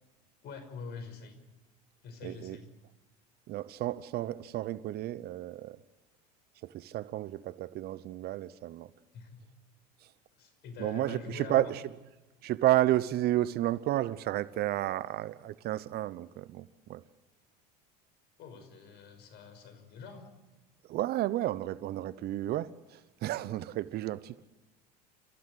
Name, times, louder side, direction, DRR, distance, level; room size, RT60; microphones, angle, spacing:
voice 1, 0.4-1.4 2.0-2.7 9.1-9.4 10.4-11.7 18.4-20.3, left 5 dB, 55° left, 5.7 m, -45 dB
voice 2, 2.2-2.6 3.5-5.8 6.7-8.9 10.8-11.8 12.4-17.0 20.9-22.7 23.2-24.4, right 14 dB, 50° right, 0.9 m, -31 dB
29.5 x 15.5 x 8.0 m
hypercardioid pair, 80°, 21 cm